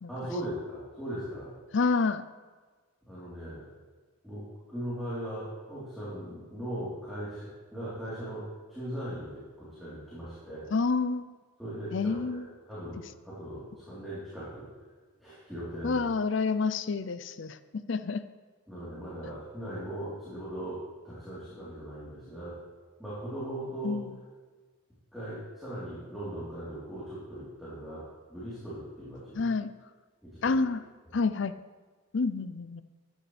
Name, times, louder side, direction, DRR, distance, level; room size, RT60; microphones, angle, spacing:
voice 1, 0.1-1.5 3.1-3.6 4.2-10.7 11.6-14.7 15.2-16.0 18.7-22.6 23.0-24.0 25.1-29.5 30.2-30.5, right 1 dB, ahead, -12 dB, 3.6 m, -39 dB
voice 2, 1.7-2.2 10.7-11.3 11.9-12.5 15.8-18.2 23.8-24.2 29.4-29.7 30.4-30.8 31.1-31.5 32.1-32.8, left 4 dB, 60° left, 13 dB, 0.5 m, -28 dB
14.5 x 11.0 x 3.4 m, 1.4 s
head